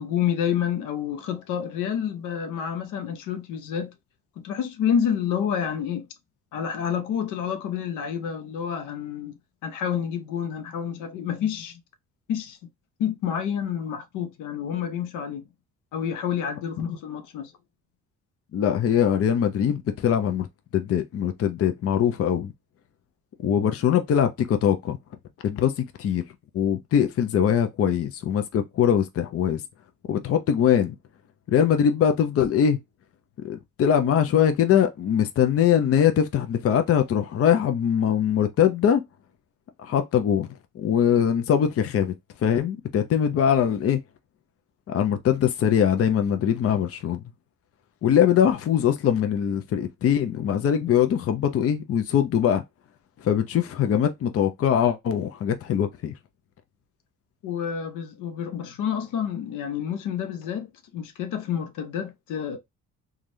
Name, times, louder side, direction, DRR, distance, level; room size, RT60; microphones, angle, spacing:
voice 1, 0.0-3.9 4.4-6.1 6.5-9.3 9.6-11.8 12.3-12.6 13.0-15.4 15.9-17.5 57.4-62.6, left 8 dB, 85° left, 0.7 m, -29 dB
voice 2, 18.5-20.5 20.7-22.5 23.4-25.0 25.4-26.2 26.5-29.6 30.1-31.0 31.5-32.8 33.4-39.0 39.8-40.5 40.7-42.1 42.4-44.0 44.9-47.2 48.0-52.6 53.2-56.1, left 9 dB, 50° left, 0.6 m, -22 dB
3.2 x 2.4 x 2.6 m
cardioid pair, 90°, 30 cm